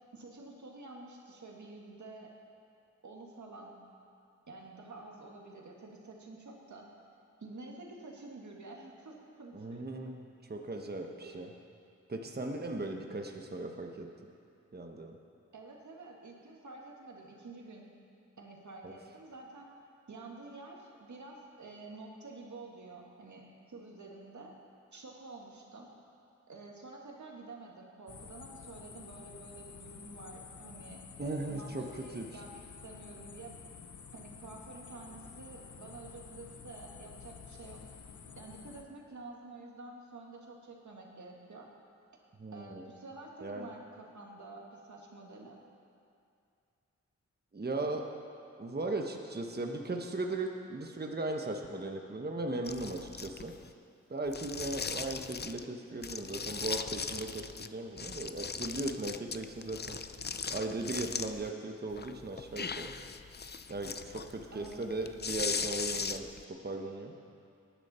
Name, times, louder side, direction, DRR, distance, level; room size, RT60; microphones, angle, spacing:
voice 1, 0.1-2.3 3.0-3.8 4.5-6.9 7.4-9.9 11.2-11.4 15.5-17.9 18.4-19.7 20.1-24.5 24.9-25.9 26.5-33.6 34.1-37.8 38.4-41.7 42.5-45.6 64.5-64.8, right 3 dB, 75° right, -1 dB, 2.0 m, -49 dB
voice 2, 9.5-11.5 12.1-14.1 14.7-15.2 18.8-18.9 31.2-32.3 42.4-42.9 43.4-43.7 47.5-48.1 48.6-53.6 54.1-60.0 60.5-62.9 63.7-67.1, right 2 dB, 35° right, 2 dB, 1.1 m, -38 dB
sound 1, 28.1-38.8, left 6 dB, 80° left, 0.9 m, -50 dB
sound 2, 52.7-53.7 54.3-55.7 56.0-57.7 58.0-61.5 61.9-66.4, left 5 dB, 35° left, 0.5 m, -39 dB
19.0 x 10.5 x 4.3 m, 2.5 s
wide cardioid pair, 70°, 29 cm